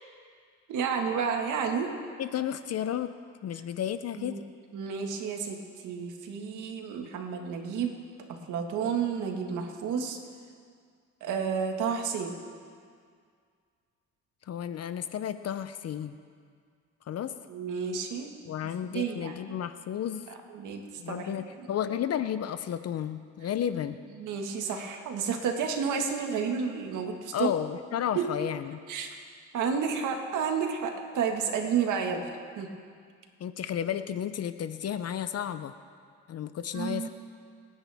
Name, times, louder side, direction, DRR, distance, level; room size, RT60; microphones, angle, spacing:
voice 1, 0.7-1.9 4.2-4.4 4.7-7.9 8.3-10.2 11.2-12.4 17.5-18.3 18.9-19.5 20.5-21.7 24.2-27.5 28.2-28.3 28.9-29.1 29.5-32.3 32.6-32.7 36.7-37.1, right 6 dB, 85° right, 3 dB, 1.8 m, -31 dB
voice 2, 2.2-3.1 3.4-4.4 14.5-16.1 17.1-17.4 18.5-20.3 21.0-24.0 27.3-28.8 33.4-35.7 36.3-37.1, left 9 dB, 55° left, 11 dB, 0.7 m, -32 dB
28.0 x 9.8 x 3.5 m, 2.1 s
cardioid pair, 90°, 30 cm